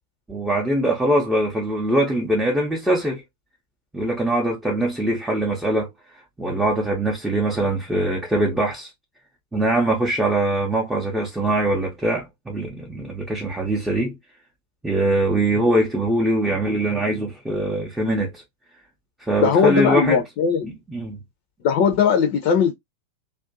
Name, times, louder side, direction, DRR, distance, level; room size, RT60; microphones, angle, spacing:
voice 1, 0.3-3.2 3.9-5.9 6.4-8.9 9.5-14.1 14.8-18.4 19.2-20.2 20.6-21.2, right 1 dB, 5° right, 0.7 m, -22 dB
voice 2, 19.4-20.7 21.6-22.7, left 7 dB, 40° left, 0.5 m, -19 dB
2.5 x 2.2 x 2.5 m
figure-of-eight pair, 90°, 0 cm